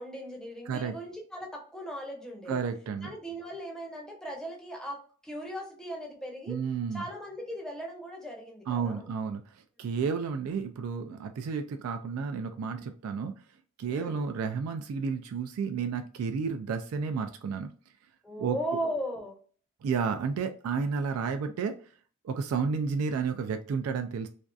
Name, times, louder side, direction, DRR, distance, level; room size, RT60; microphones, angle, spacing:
voice 1, 0.0-2.6 3.0-6.6 6.9-9.1 9.8-9.9 13.9-14.2 18.2-19.4, equal, 5° left, 0 dB, 0.6 m, -38 dB
voice 2, 2.5-3.1 6.5-7.0 8.7-13.3 13.8-17.7 18.4-18.6 19.8-21.8 22.2-24.3, right 5 dB, 85° right, 10 dB, 0.3 m, -31 dB
2.5 x 2.3 x 2.2 m, 0.43 s
head